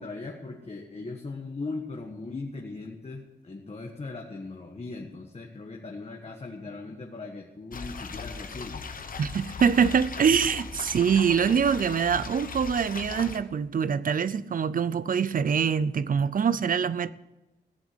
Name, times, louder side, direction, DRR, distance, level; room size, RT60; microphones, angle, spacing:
voice 1, 0.0-8.9, left 3 dB, 35° left, 1.5 m, -39 dB
sound 1, 7.7-13.4, left 5 dB, 55° left, 1.1 m, -38 dB
voice 2, 9.2-17.1, right 7 dB, 55° right, 0.5 m, -24 dB
16.5 x 7.3 x 8.0 m
wide cardioid pair, 110°, 17 cm